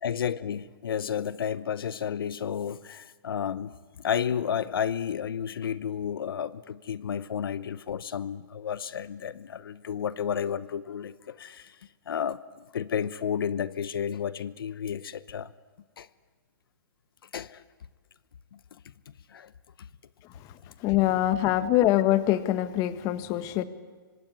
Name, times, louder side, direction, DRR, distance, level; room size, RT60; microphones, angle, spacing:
voice 1, 0.0-3.7 4.0-11.8 12.1-12.4 12.7-15.5 16.0-16.1 17.3-17.6 18.5-18.6 19.3-19.5, left 8 dB, 85° left, 15 dB, 0.9 m, -32 dB
voice 2, 20.8-23.6, left 14 dB, 30° left, 11 dB, 1.6 m, -24 dB
24.5 x 24.0 x 9.6 m, 1.5 s
hypercardioid pair, 145°, 12 cm